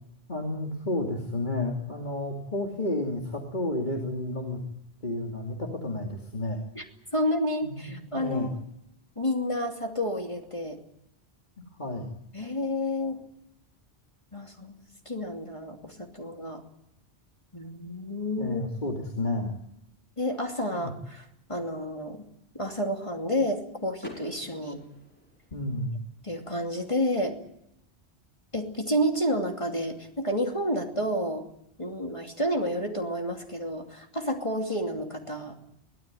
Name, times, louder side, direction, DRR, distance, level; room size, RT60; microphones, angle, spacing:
voice 1, 0.3-4.6 5.0-6.6 7.6-8.5 11.8-12.1 18.4-19.6 20.7-20.9 25.5-25.9, left 1 dB, 45° left, 0 dB, 2.9 m, -31 dB
voice 2, 7.1-8.5 9.2-10.8 12.3-13.2 14.3-14.8 15.1-16.6 17.5-18.6 20.2-22.3 22.5-24.8 26.2-27.4 28.5-31.5 31.8-35.6, equal, 30° left, 2 dB, 2.8 m, -30 dB
Car / Door, 24.0-25.9, left 1 dB, 10° left, 5.2 m, -47 dB
23.5 x 17.0 x 9.1 m, 0.80 s
omnidirectional pair, 1.1 m